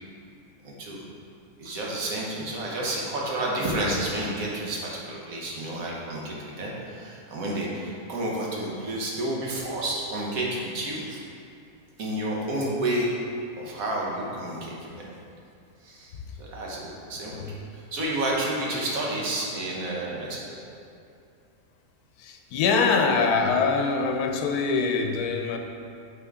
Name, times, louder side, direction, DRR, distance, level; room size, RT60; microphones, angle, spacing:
voice 1, 0.6-1.0 1.6-11.2 12.0-13.1 13.6-15.0 15.8-16.1 16.4-17.4 17.7-20.6, right 1 dB, 70° right, -4 dB, 1.5 m, -30 dB
voice 2, 22.2-25.6, left 4 dB, 90° left, 4 dB, 1.1 m, -24 dB
8.6 x 3.7 x 3.6 m, 2.6 s
omnidirectional pair, 1.6 m